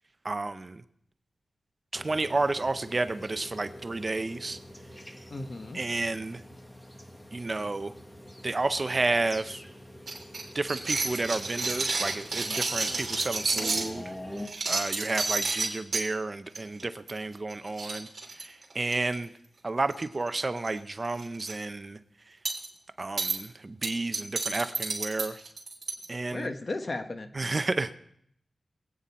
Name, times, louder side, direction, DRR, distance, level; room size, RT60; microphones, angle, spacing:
voice 1, 0.2-0.8 1.9-4.6 5.7-6.4 7.3-7.9 8.4-9.6 10.5-14.0 14.7-18.1 18.4-19.3 19.6-22.0 23.0-25.4 26.1-26.5 27.3-28.0, right 3 dB, 35° right, 11 dB, 0.6 m, -31 dB
sound 1, 1.9-14.5, equal, 15° left, 1.5 m, -45 dB
voice 2, 5.3-5.8 26.3-27.3, left 2 dB, 45° left, 7 dB, 1.2 m, -35 dB
sound 2, 10.1-13.9 14.4-16.1 16.5-16.8 17.1-17.2 17.5-17.6 17.8-19.1 19.9-20.3 20.6-20.7 21.1-21.5 22.5-22.7 23.2-23.4 23.8-26.1, right 3 dB, 55° right, 3.3 m, -30 dB
23.0 x 9.1 x 4.2 m, 0.70 s
wide cardioid pair, 85°, 0 cm